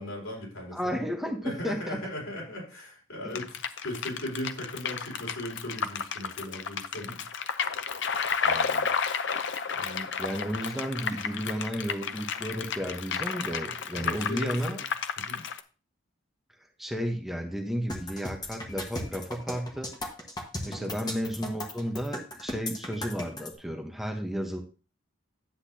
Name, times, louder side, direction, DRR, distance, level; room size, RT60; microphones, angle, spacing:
voice 1, 0.0-1.0 1.4-3.6 3.8-7.2 9.8-10.1 13.9-14.8 15.2-15.4 20.6-21.0, left 1 dB, 85° left, -3 dB, 4.7 m, -38 dB
voice 2, 0.7-2.0 3.2-3.4 8.4-8.9 10.2-14.8 16.8-19.9 20.6-24.6, equal, ahead, 3 dB, 0.9 m, -33 dB
sound 1, 3.4-15.6, left 6 dB, 60° left, 0.6 m, -32 dB
sound 2, 17.9-23.5, left 1 dB, 20° left, 1.3 m, -36 dB
10.0 x 8.1 x 2.8 m, 0.34 s
head